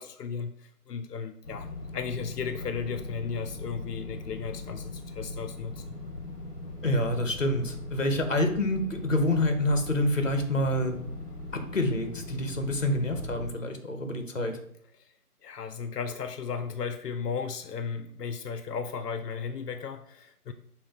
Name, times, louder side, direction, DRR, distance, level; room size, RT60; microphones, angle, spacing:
voice 1, 0.0-6.0 14.9-15.1 15.4-20.5, left 6 dB, 90° left, 9 dB, 0.5 m, -35 dB
sound 1, 1.4-13.5, left 2 dB, 30° left, 1.3 m, -40 dB
voice 2, 6.8-11.0 11.5-14.6, left 1 dB, 55° left, 6 dB, 0.8 m, -27 dB
5.7 x 2.1 x 4.0 m, 0.69 s
figure-of-eight pair, 180°, 46 cm